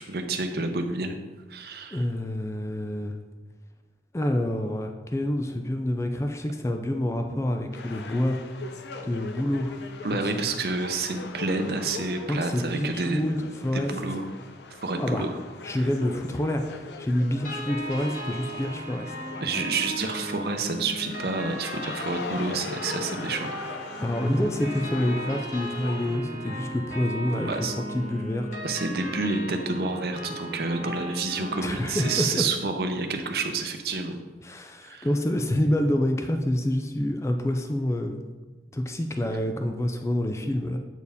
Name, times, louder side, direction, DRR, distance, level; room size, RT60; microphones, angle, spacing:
voice 1, 0.1-1.2 1.5-2.0 10.0-13.2 13.7-14.2 14.8-15.3 19.4-23.5 27.4-27.7 28.6-34.2 34.8-35.1, right 3 dB, 60° right, 5 dB, 0.6 m, -29 dB
voice 2, 1.9-3.1 4.1-8.4 9.0-9.8 10.2-10.6 12.3-13.9 15.0-15.3 15.6-19.1 24.0-27.5 27.9-28.5 31.6-32.5 34.4-38.2 38.7-40.8, left 1 dB, 15° left, 5 dB, 0.4 m, -27 dB
sound 1, 7.7-26.2, left 4 dB, 75° left, 0.5 m, -41 dB
sound 2, 17.4-32.2, equal, 45° left, 1.6 m, -37 dB
8.1 x 4.5 x 3.5 m, 1.2 s
head